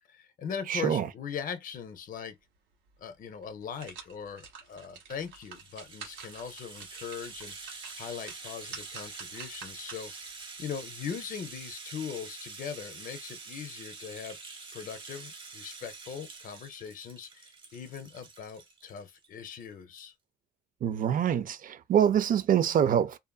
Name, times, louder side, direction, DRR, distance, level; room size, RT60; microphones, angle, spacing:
voice 1, 0.1-2.4 3.0-10.1 10.6-14.4 14.7-20.1, left 7 dB, 45° left, 0.6 m, -40 dB
voice 2, 0.7-1.1 20.8-23.2, right 9 dB, 45° right, 0.5 m, -25 dB
sound 1, 2.9-3.0 3.4-10.3 10.7-10.8, right 6 dB, 75° right, 1.3 m, -48 dB
Rattle (instrument), 5.1-19.3 19.6-19.7 20.0-20.1, right 4 dB, 25° right, 1.0 m, -46 dB
2.6 x 2.5 x 2.3 m
cardioid pair, 115°, 19 cm